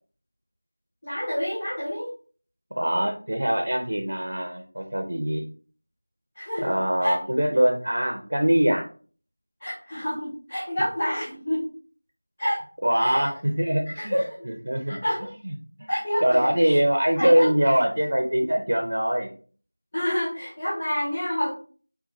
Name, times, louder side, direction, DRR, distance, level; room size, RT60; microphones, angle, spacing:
voice 1, 1.0-2.1 6.4-6.7 7.0-7.2 9.6-11.7 12.4-12.6 13.0-13.3 13.9-14.3 14.9-15.3 15.9-16.8 17.2-17.5 19.9-21.5, equal, 25° left, -8 dB, 0.9 m, -28 dB
voice 2, 2.7-5.4 6.6-8.8 12.8-14.1 14.5-15.0 15.4-15.5 15.8-15.9 16.2-19.3, right 1 dB, 55° right, 3 dB, 0.7 m, -23 dB
5.6 x 2.2 x 2.7 m, 0.41 s
figure-of-eight pair, 180°, 0 cm